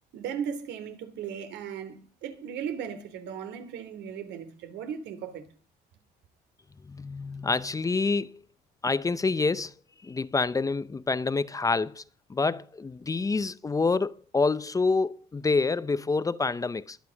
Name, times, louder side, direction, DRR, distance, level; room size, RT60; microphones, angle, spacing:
voice 1, 0.1-5.4, right 8 dB, 80° right, 3.3 m, -37 dB
voice 2, 6.8-8.4 8.8-9.7 10.0-12.0 12.3-17.0, left 4 dB, 20° left, 0.7 m, -27 dB
23.0 x 9.3 x 5.2 m
cardioid pair, 125°, 18 cm